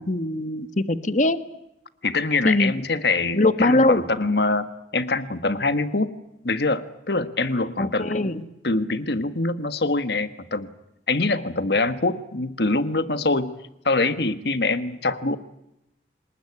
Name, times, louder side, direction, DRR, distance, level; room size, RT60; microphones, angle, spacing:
voice 1, 0.0-1.4 2.4-2.7 3.3-4.0 7.8-8.4, left 2 dB, 40° left, 12 dB, 1.3 m, -21 dB
voice 2, 2.0-6.1 6.4-10.7 11.1-13.5 13.8-15.4, left 3 dB, 60° left, 11 dB, 1.4 m, -24 dB
25.0 x 20.0 x 9.8 m, 0.87 s
head